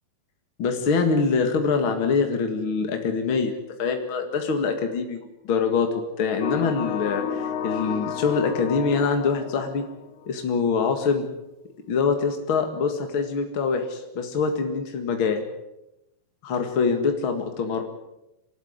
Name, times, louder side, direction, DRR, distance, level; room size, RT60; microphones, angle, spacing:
voice 1, 0.6-5.9 6.2-9.8 10.3-11.3 11.9-15.4 16.4-17.8, left 5 dB, 50° left, 5 dB, 1.6 m, -24 dB
sound 1, 6.4-10.3, left 7 dB, 70° left, 3.6 m, -31 dB
30.0 x 13.0 x 9.6 m, 0.91 s
omnidirectional pair, 5.1 m